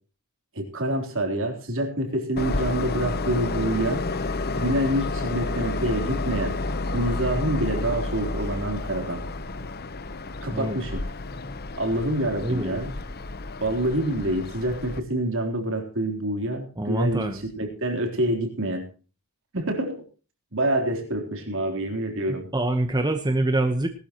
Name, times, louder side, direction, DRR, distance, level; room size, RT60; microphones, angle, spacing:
voice 1, 0.5-4.1 4.6-6.6 6.9-9.2 10.4-11.1 11.8-13.0 13.6-18.9 19.5-20.1 20.5-22.5, right 1 dB, 60° right, 4 dB, 3.7 m, -27 dB
Train, 2.4-15.0, left 2 dB, 45° left, 1.0 m, -30 dB
voice 2, 12.4-12.8 16.8-17.4 22.3-23.9, right 1 dB, 20° right, 7 dB, 1.1 m, -25 dB
19.5 x 12.5 x 3.0 m, 0.37 s
head